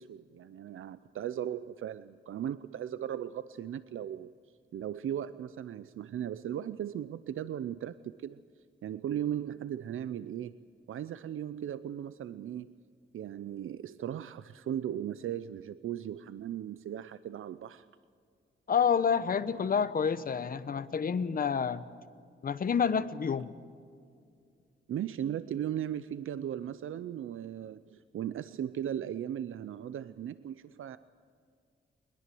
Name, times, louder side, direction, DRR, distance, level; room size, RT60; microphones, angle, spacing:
voice 1, 0.0-4.3 4.7-8.4 8.8-10.5 10.9-12.7 13.1-17.9 24.9-31.0, right 10 dB, 85° right, 14 dB, 0.6 m, -37 dB
voice 2, 18.7-21.8 22.4-23.5, left 6 dB, 45° left, 13 dB, 0.9 m, -28 dB
21.5 x 21.5 x 7.7 m, 2.2 s
wide cardioid pair, 155°, 20 cm